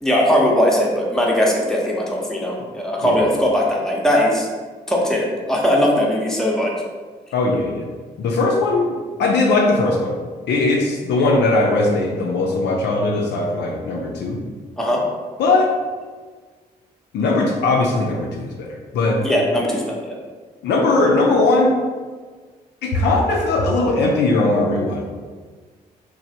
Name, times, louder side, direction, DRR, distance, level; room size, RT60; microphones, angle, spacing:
voice 1, 0.0-4.5 4.9-6.7 14.8-15.0 19.2-20.2, equal, ahead, -3 dB, 0.7 m, -19 dB
voice 2, 7.3-7.8 8.2-10.2 10.5-14.4 15.4-15.7 17.1-19.2 20.6-21.8 22.8-25.0, left 2 dB, 55° left, 0 dB, 0.4 m, -19 dB
3.1 x 2.1 x 2.7 m, 1.4 s
hypercardioid pair, 40°, 21 cm